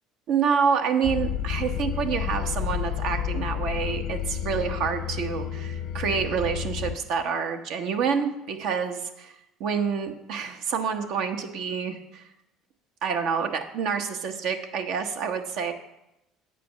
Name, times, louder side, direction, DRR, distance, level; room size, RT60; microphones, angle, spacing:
voice 1, 0.3-9.3 9.6-12.2 13.0-15.7, right 6 dB, 70° right, 5 dB, 0.9 m, -27 dB
sound 1, 1.0-7.0, left 9 dB, 65° left, 0.5 m, -30 dB
8.3 x 5.0 x 6.8 m, 0.91 s
supercardioid pair, 80°, 0 cm